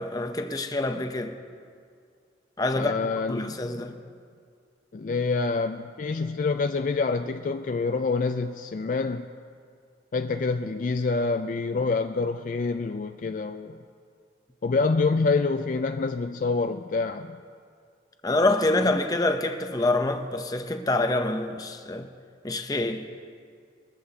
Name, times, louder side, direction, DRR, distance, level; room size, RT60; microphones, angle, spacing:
voice 1, 0.0-1.4 2.6-2.9 3.3-4.0 18.2-22.1 22.4-23.1, left 2 dB, 20° left, 0.7 m, -26 dB
voice 2, 2.7-3.8 4.9-9.3 10.1-13.7 14.6-17.4 18.8-18.9, left 4 dB, 45° left, 0.3 m, -27 dB
21.5 x 14.0 x 2.8 m
head